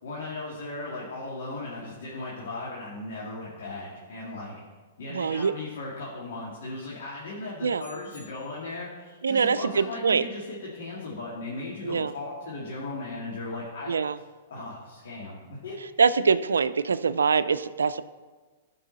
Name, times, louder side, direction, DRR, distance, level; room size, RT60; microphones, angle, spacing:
voice 1, 0.0-4.6 5.0-13.9 14.5-15.8, left 2 dB, 70° left, -6 dB, 2.4 m, -37 dB
voice 2, 5.1-5.5 7.6-7.8 9.2-10.2 11.8-12.1 13.9-14.2 16.0-18.0, right 5 dB, 90° right, 14 dB, 0.4 m, -24 dB
sound 1, 7.8-8.9, left 3 dB, 85° left, 3.4 m, -54 dB
15.5 x 5.5 x 4.1 m, 1.4 s
hypercardioid pair, 125°, 0 cm